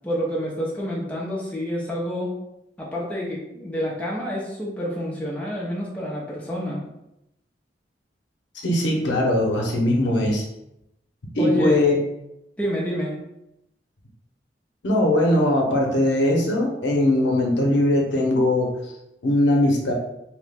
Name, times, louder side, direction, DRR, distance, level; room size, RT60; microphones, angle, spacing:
voice 1, 0.0-2.3 2.8-6.8 11.4-11.8 12.6-13.1, equal, 10° left, -4 dB, 0.6 m, -28 dB
voice 2, 8.6-10.4 11.3-12.0 14.8-18.7 19.2-19.9, left 1 dB, 90° left, 0 dB, 0.7 m, -20 dB
2.9 x 2.2 x 3.3 m, 0.84 s
head